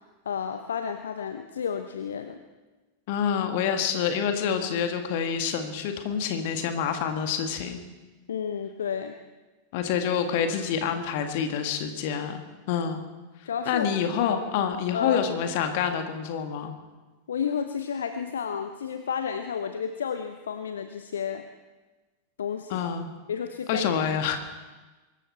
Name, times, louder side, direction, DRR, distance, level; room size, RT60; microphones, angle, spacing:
voice 1, 0.2-2.4 8.3-9.2 13.4-13.9 14.3-14.4 14.9-15.2 17.3-21.5 22.4-22.8 23.3-23.9, left 7 dB, 65° left, 8 dB, 0.8 m, -31 dB
voice 2, 3.1-7.8 9.7-13.0 13.7-16.7 22.7-23.1 23.7-24.4, left 7 dB, 50° left, 7 dB, 1.9 m, -27 dB
23.5 x 13.5 x 4.5 m, 1.2 s
figure-of-eight pair, 90°, 0 cm